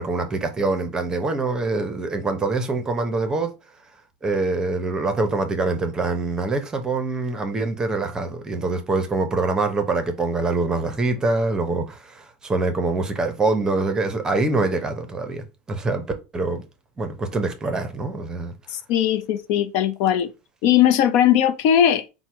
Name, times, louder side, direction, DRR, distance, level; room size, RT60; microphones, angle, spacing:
voice 1, 0.0-3.5 4.2-16.0 16.3-16.6 17.0-18.5, right 3 dB, 15° right, 0.7 m, -24 dB
voice 2, 18.7-20.3 20.6-22.0, left 10 dB, 60° left, 0.5 m, -19 dB
4.5 x 2.1 x 4.4 m
supercardioid pair, 150°, 4 cm